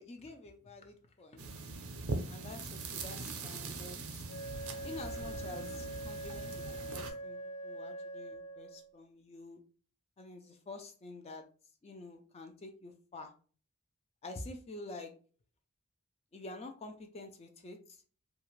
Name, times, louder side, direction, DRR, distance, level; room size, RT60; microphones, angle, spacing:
voice 1, 0.0-1.5 2.3-4.2 4.8-9.6 10.2-11.4 11.8-13.3 14.2-15.1 16.3-17.8, left 2 dB, 25° left, 5 dB, 0.3 m, -48 dB
sound 1, 1.4-7.1, right 3 dB, 70° right, 0.5 m, -41 dB
Wind instrument woodwind instrument, 4.3-8.9, right 1 dB, 75° left, 0.6 m, -44 dB
2.4 x 2.3 x 3.0 m, 0.40 s
head